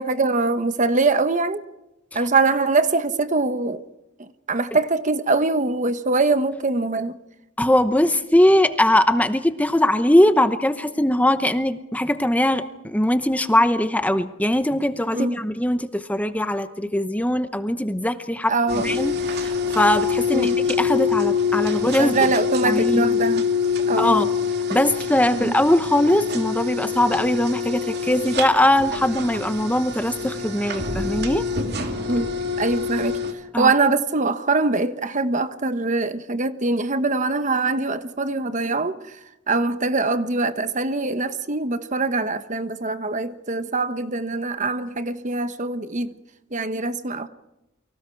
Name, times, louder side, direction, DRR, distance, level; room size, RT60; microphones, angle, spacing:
voice 1, 0.0-1.6 2.1-3.8 4.5-7.2 15.1-15.4 18.5-18.9 20.3-20.6 22.0-23.5 23.9-24.2 25.3-25.5 32.1-33.2 33.6-39.0 39.5-46.1 46.5-47.3, right 3 dB, 40° right, 1.1 m, -23 dB
voice 2, 7.6-22.3 22.6-23.1 24.0-24.3 24.7-31.4 33.5-33.7, left 1 dB, 5° left, 0.9 m, -21 dB
sound 1, 18.7-33.3, left 5 dB, 55° right, 2.6 m, -25 dB
30.0 x 24.5 x 4.6 m
head